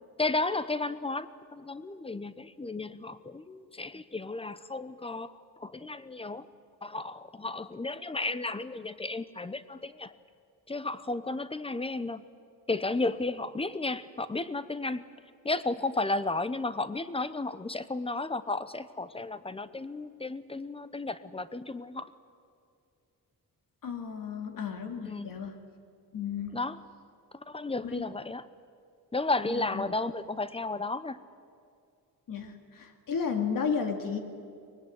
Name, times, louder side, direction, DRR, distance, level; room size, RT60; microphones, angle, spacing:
voice 1, 0.2-6.5 6.8-10.1 10.7-12.2 12.7-15.0 15.4-22.1 25.0-25.3 26.5-26.8 27.3-28.5 29.1-31.2, left 2 dB, 15° left, 14 dB, 0.8 m, -33 dB
voice 2, 23.8-25.6 26.1-26.5 27.8-28.1 29.5-29.8 32.3-34.2, left 6 dB, 65° left, 5 dB, 2.4 m, -33 dB
24.0 x 20.5 x 9.7 m, 2.3 s
wide cardioid pair, 130°, 35 cm